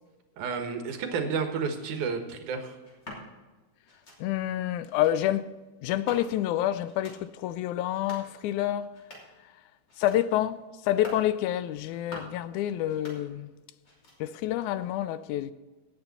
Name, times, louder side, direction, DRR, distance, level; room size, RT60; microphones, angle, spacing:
voice 1, 0.4-2.8, right 5 dB, 75° right, 2.7 m, -31 dB
sound 1, 2.8-3.2 3.9-4.2 4.8-5.1 5.9-6.5 6.8-7.2 7.8-8.3 8.8-9.4 9.9-10.2 10.8-11.3 11.8-12.4 12.8-13.6 13.8-14.4, left 1 dB, 35° left, 3.5 m, -46 dB
voice 2, 4.2-5.5 5.8-8.9 9.4-9.6 10.0-13.5 14.2-15.5, left 12 dB, 80° left, 1.9 m, -28 dB
17.5 x 8.9 x 4.1 m
omnidirectional pair, 3.6 m